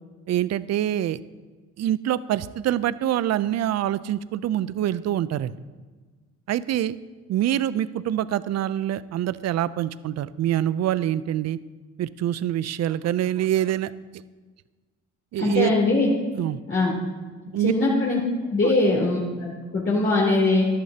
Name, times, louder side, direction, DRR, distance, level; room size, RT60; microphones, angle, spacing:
voice 1, 0.3-1.2 1.8-5.5 6.5-7.0 7.3-11.6 12.0-13.9 15.3-15.7 16.4-16.6 17.5-17.7, right 12 dB, 60° right, 16 dB, 0.5 m, -25 dB
voice 2, 15.4-16.1 16.7-16.9 17.6-18.2 18.5-20.7, left 2 dB, 40° left, -7 dB, 3.0 m, -21 dB
14.5 x 11.5 x 2.8 m, 1.4 s
cardioid pair, 90°, 30 cm